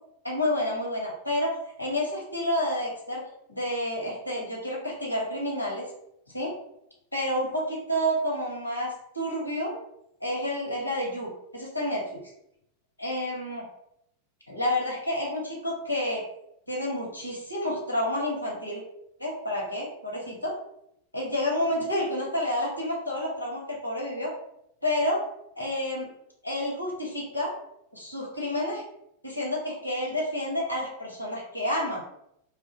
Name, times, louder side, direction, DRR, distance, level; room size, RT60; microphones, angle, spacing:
voice 1, 0.2-5.9 6.3-6.5 7.1-9.7 10.2-12.2 13.0-13.7 14.5-16.2 16.7-18.8 19.2-20.5 21.1-24.3 24.8-25.2 25.6-26.1 26.4-27.5 27.9-28.8 29.2-32.0, left 1 dB, 90° left, -3 dB, 0.8 m, -29 dB
2.2 x 2.1 x 2.6 m, 0.77 s
figure-of-eight pair, 90°, 0 cm